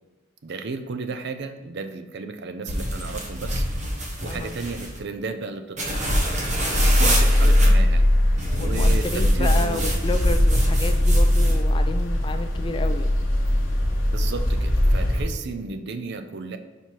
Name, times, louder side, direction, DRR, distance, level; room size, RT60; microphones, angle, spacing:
voice 1, 0.4-3.7 4.2-5.9 6.8-8.0 8.6-9.9 14.1-16.6, right 4 dB, 55° right, 8 dB, 0.5 m, -33 dB
sound 1, 2.7-5.0 5.8-7.7 8.4-11.6, equal, 35° right, 1.0 m, -26 dB
voice 2, 4.2-4.5 6.6-7.0 8.6-13.2, left 3 dB, 25° left, 8 dB, 0.4 m, -31 dB
sound 2, 6.7-15.2, left 1 dB, 65° left, 1.0 m, -20 dB
5.3 x 4.6 x 4.5 m, 1.2 s
head